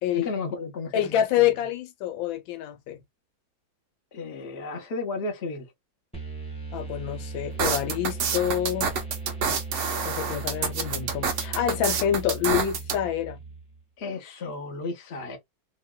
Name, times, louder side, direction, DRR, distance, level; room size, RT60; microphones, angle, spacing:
voice 1, 0.1-1.5 4.1-5.7 14.0-15.4, left 3 dB, 50° left, 0.7 m, -33 dB
voice 2, 0.9-3.0 6.7-8.9 10.0-13.4, left 11 dB, 85° left, 1.4 m, -27 dB
sound 1, 6.1-13.8, right 3 dB, 5° left, 0.9 m, -37 dB
sound 2, 7.6-13.0, right 6 dB, 85° right, 0.6 m, -27 dB
3.0 x 2.7 x 2.2 m
omnidirectional pair, 2.1 m